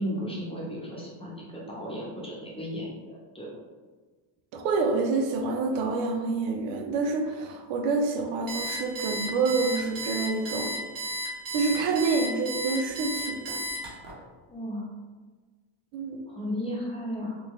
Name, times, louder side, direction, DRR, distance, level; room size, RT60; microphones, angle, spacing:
voice 1, 0.0-3.5 14.5-14.8 16.3-17.4, equal, 10° left, -4 dB, 0.9 m, -34 dB
voice 2, 4.5-10.7 11.5-13.6 15.9-16.2, right 4 dB, 70° right, 4 dB, 0.6 m, -27 dB
Alarm, 8.5-14.1, right 1 dB, 40° right, 1.3 m, -33 dB
3.8 x 2.2 x 3.1 m, 1.4 s
cardioid pair, 110°, 49 cm